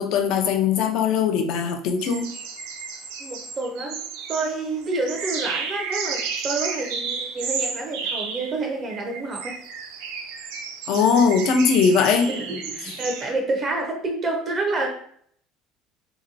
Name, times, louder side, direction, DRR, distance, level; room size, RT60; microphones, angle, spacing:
voice 1, 0.0-2.3 10.9-12.3 12.8-12.9, left 6 dB, 60° left, 4 dB, 0.5 m, -20 dB
sound 1, 2.0-13.3, right 5 dB, 85° right, 0.5 m, -32 dB
voice 2, 3.2-4.0 4.3-9.6 12.3-14.9, right 2 dB, 35° right, 2 dB, 0.5 m, -28 dB
3.0 x 2.8 x 2.6 m, 0.62 s
cardioid pair, 135°, 0 cm